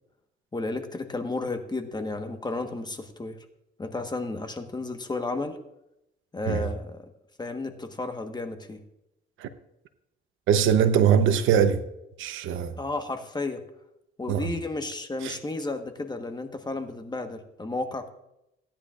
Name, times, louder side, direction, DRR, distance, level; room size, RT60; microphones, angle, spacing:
voice 1, 0.5-3.4 3.8-5.6 6.3-7.1 7.4-8.8 12.8-13.6 14.2-18.1, left 2 dB, 20° left, 1.3 m, -32 dB
voice 2, 10.5-11.8 12.2-12.8 14.3-14.5 15.2-15.4, right 8 dB, 85° right, 0.9 m, -22 dB
17.0 x 10.5 x 2.5 m
cardioid pair, 90°, 20 cm